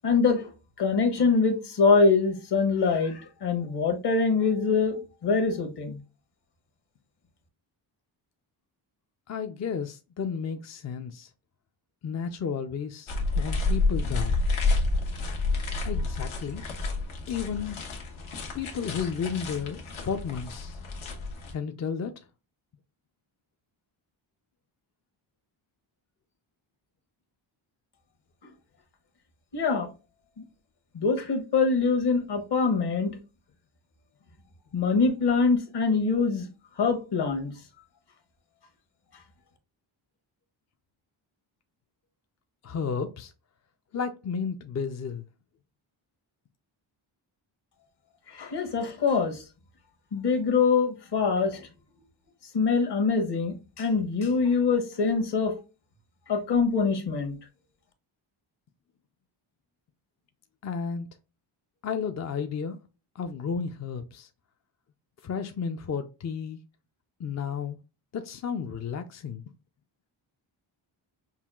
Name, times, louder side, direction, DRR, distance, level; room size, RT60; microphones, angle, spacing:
voice 1, 0.0-0.5 0.8-6.0 29.5-29.9 30.9-33.2 34.7-36.5 36.8-37.5 48.3-49.4 50.1-51.7 52.5-55.5 56.3-57.3, left 4 dB, 55° left, 1.2 m, -24 dB
voice 2, 9.3-11.3 12.0-14.4 15.8-16.6 17.3-17.8 18.5-20.8 21.5-22.2 42.6-43.3 43.9-45.3 60.6-61.1 61.8-62.8 63.1-64.3 65.2-66.6 67.2-67.8 68.1-69.4, left 6 dB, 35° left, 0.4 m, -32 dB
sound 1, 13.1-21.5, left 3 dB, 80° left, 1.2 m, -29 dB
5.5 x 2.3 x 2.3 m
cardioid pair, 80°, 48 cm